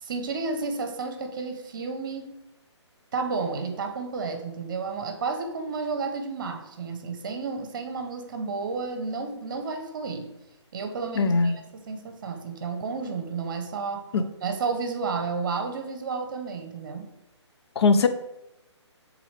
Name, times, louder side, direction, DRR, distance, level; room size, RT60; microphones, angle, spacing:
voice 1, 0.0-2.3 3.1-10.3 10.7-14.0 14.4-17.1, right 4 dB, 45° right, 5 dB, 0.9 m, -31 dB
voice 2, 11.2-11.6 14.1-14.2 17.8-18.1, left 4 dB, 60° left, 10 dB, 0.5 m, -20 dB
7.6 x 3.9 x 3.3 m, 0.90 s
hypercardioid pair, 160°, 15 cm